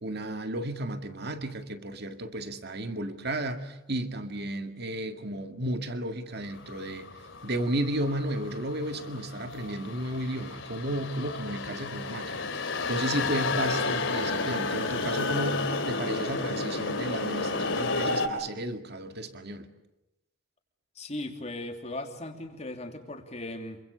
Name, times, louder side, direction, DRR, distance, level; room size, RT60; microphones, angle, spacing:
voice 1, 0.0-7.1 7.4-12.5 12.9-19.7, right 1 dB, 50° right, 2.1 m, -33 dB
sound 1, 6.6-18.3, left 3 dB, 70° left, 2.8 m, -32 dB
voice 2, 20.9-23.8, left 1 dB, 35° left, 3.1 m, -38 dB
27.5 x 25.0 x 6.8 m
head